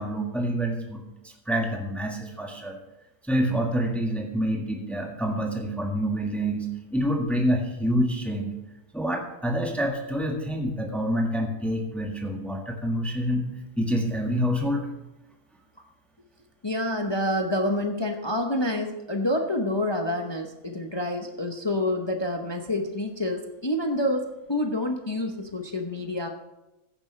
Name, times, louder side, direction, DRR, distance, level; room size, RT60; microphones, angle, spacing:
voice 1, 0.0-2.8 3.3-6.7 6.9-8.5 8.9-13.4 13.8-14.9, equal, ahead, 1 dB, 1.5 m, -27 dB
voice 2, 16.6-24.2 24.5-26.3, left 1 dB, 20° left, 3 dB, 0.8 m, -27 dB
15.5 x 10.5 x 3.3 m, 0.98 s
omnidirectional pair, 1.5 m